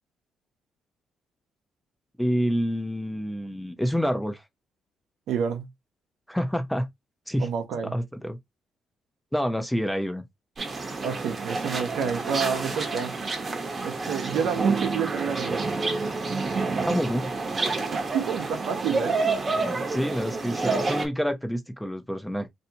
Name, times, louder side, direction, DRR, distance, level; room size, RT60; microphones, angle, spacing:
voice 1, 2.2-4.4 6.3-6.9 7.3-7.5 7.9-8.4 9.3-10.2 16.9-17.3 19.6-22.5, equal, 5° left, 0.7 m, -28 dB
voice 2, 5.3-5.7 7.4-8.0 11.0-13.2 13.8-15.7 17.9-19.2, right 7 dB, 80° right, 0.8 m, -29 dB
sound 1, 10.6-21.1, right 3 dB, 35° right, 0.9 m, -28 dB
3.2 x 2.8 x 2.8 m
cardioid pair, 90°, 0 cm